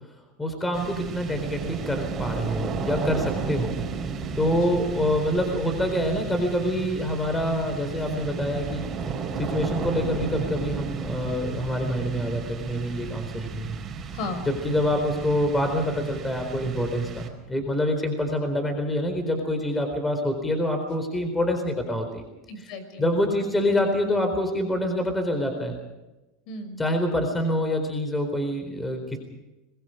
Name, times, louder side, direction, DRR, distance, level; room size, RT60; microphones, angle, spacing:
voice 1, 0.4-3.8 4.4-8.9 9.3-13.8 14.5-22.2 23.0-25.8 26.8-29.2, left 1 dB, 10° left, 6 dB, 4.1 m, -26 dB
sound 1, 0.7-17.7, right 5 dB, 30° right, 4.8 m, -33 dB
voice 2, 14.1-14.5 22.5-23.6 26.5-26.8, left 2 dB, 60° left, 9 dB, 5.9 m, -36 dB
26.0 x 21.5 x 5.1 m, 1.0 s
supercardioid pair, 130°, 0 cm